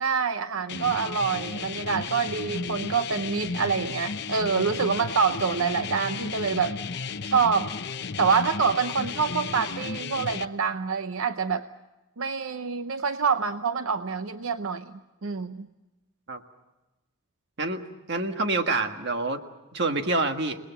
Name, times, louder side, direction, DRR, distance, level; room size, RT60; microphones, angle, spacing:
voice 1, 0.0-6.8 7.2-7.7 8.2-11.7 12.2-14.9 15.2-15.7, right 5 dB, 80° right, 9 dB, 0.8 m, -26 dB
sound 1, 0.7-10.5, left 5 dB, 50° left, 0.8 m, -34 dB
voice 2, 18.1-19.4 19.7-20.6, right 2 dB, 55° right, 6 dB, 1.6 m, -26 dB
29.0 x 19.5 x 7.0 m, 1.1 s
head